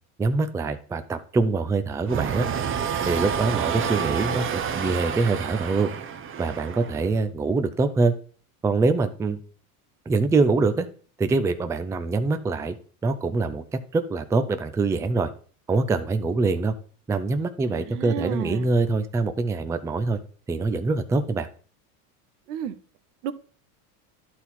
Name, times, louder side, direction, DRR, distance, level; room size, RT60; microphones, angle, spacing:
voice 1, 0.2-2.5 3.0-5.9 6.4-8.1 8.6-9.4 10.1-10.9 11.2-12.7 13.0-15.3 15.7-16.7 17.1-20.2 20.5-21.5, right 3 dB, 5° right, 0.4 m, -24 dB
sound 1, 2.0-7.2, right 7 dB, 25° right, 0.7 m, -29 dB
voice 2, 17.7-18.7 22.5-22.7 23.2-23.3, right 9 dB, 80° right, 0.8 m, -32 dB
11.5 x 4.0 x 4.2 m
supercardioid pair, 105°, 46 cm